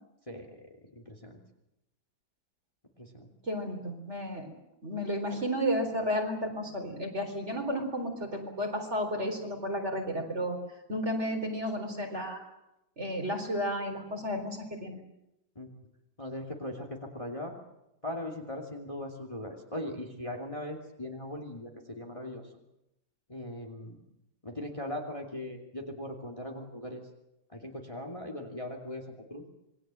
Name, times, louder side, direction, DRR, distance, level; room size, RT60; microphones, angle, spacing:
voice 1, 0.3-1.4 3.0-3.3 15.5-15.7 16.2-17.5 18.0-22.5 23.3-24.0 24.4-27.0 27.5-29.4, left 1 dB, 15° left, 1 dB, 2.7 m, -39 dB
voice 2, 3.4-4.5 4.8-10.6 10.9-12.4 13.0-15.0, equal, 35° right, 4 dB, 4.5 m, -32 dB
27.0 x 21.5 x 7.7 m, 0.90 s
omnidirectional pair, 2.0 m